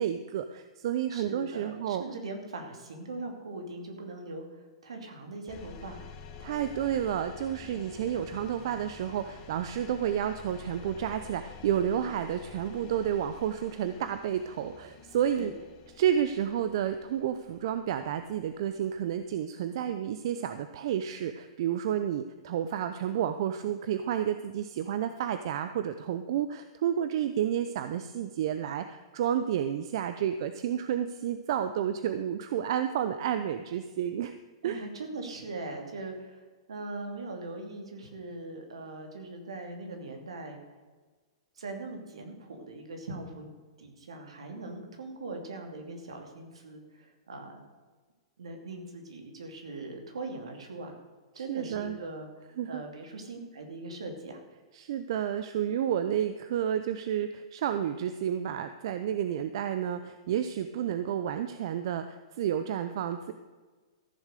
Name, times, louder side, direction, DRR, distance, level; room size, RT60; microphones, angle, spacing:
voice 1, 0.0-2.0 6.4-15.5 16.0-34.3 34.6-34.8 51.4-52.0 52.6-52.8 54.7-63.3, right 9 dB, 60° right, 10 dB, 0.7 m, -31 dB
voice 2, 1.1-6.1 15.4-15.5 34.6-40.6 41.6-47.6 48.4-50.9 51.3-52.3 52.7-54.4, right 2 dB, 80° right, 4 dB, 2.7 m, -41 dB
sound 1, 5.5-19.4, left 6 dB, 40° left, 2.0 m, -49 dB
14.0 x 7.3 x 6.8 m, 1.4 s
hypercardioid pair, 120°, 3 cm